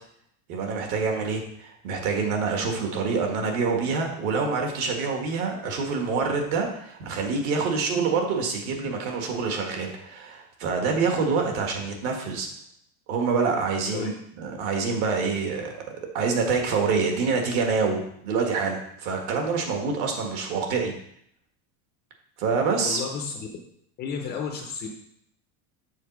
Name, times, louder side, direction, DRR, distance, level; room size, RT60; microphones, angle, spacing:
voice 1, 0.5-12.5 13.1-15.7 16.1-20.9 22.4-23.0, right 4 dB, 65° right, 2 dB, 1.8 m, -26 dB
voice 2, 22.8-23.5 24.0-24.9, left 6 dB, 25° left, 2 dB, 0.4 m, -32 dB
7.0 x 4.0 x 6.0 m, 0.70 s
cardioid pair, 170°, 44 cm